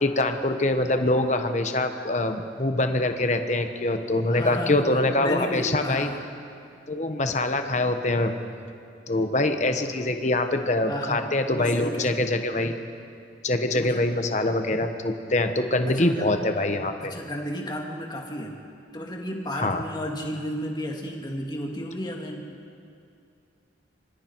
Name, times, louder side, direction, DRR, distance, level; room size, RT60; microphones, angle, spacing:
voice 1, 0.0-6.1 6.9-8.3 9.1-12.8 13.4-17.1 19.5-19.8, left 2 dB, 40° left, 6 dB, 1.2 m, -24 dB
voice 2, 4.3-6.3 10.9-12.2 13.7-14.1 15.9-16.3 17.0-18.6 18.9-22.5, equal, 20° left, 0 dB, 2.2 m, -33 dB
27.0 x 24.0 x 4.6 m, 2.5 s
head